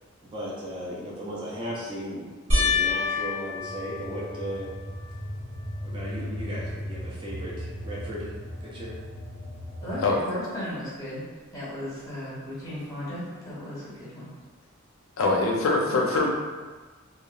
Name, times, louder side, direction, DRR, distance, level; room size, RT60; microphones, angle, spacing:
voice 1, 0.2-4.7 5.8-8.3 8.6-8.9, equal, 25° right, -6 dB, 0.4 m, -36 dB
sound 1, 2.5-5.1 5.7-6.3 6.6-6.7 9.9-10.0, left 3 dB, 60° right, 0.9 m, -28 dB
sound 2, 3.6-10.1, equal, 85° right, 1.0 m, -37 dB
voice 2, 9.8-11.2 11.5-14.3, left 1 dB, 15° left, -9 dB, 0.9 m, -35 dB
voice 3, 15.2-16.3, left 3 dB, 75° left, 0 dB, 0.4 m, -23 dB
2.8 x 2.1 x 2.3 m, 1.3 s
head